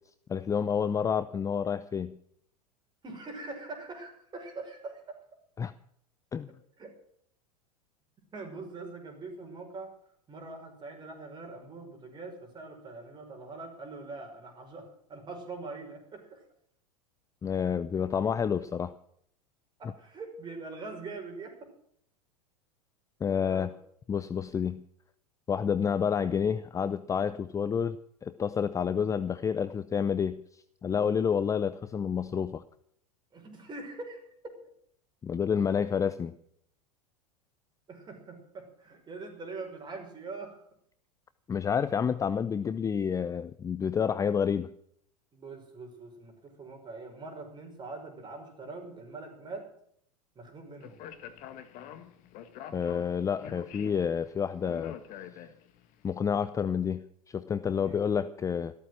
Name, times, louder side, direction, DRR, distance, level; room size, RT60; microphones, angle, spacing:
voice 1, 0.3-2.2 5.6-5.7 6.3-6.5 17.4-18.9 23.2-23.7 24.1-24.8 25.5-28.0 28.2-30.4 30.8-32.6 35.2-36.3 41.5-44.7 52.7-55.0 56.0-58.7, left 7 dB, 15° left, 14 dB, 0.6 m, -29 dB
voice 2, 3.0-5.2 6.8-6.9 8.3-9.9 10.3-16.4 19.8-21.7 23.4-23.7 33.3-34.3 37.9-40.6 45.3-49.7 50.4-51.0 57.8-58.0, right 3 dB, 20° right, 3 dB, 5.6 m, -43 dB
Speech, 50.8-55.9, left 10 dB, 40° left, 1.7 m, -46 dB
14.5 x 13.0 x 6.2 m, 0.66 s
figure-of-eight pair, 90°, 20 cm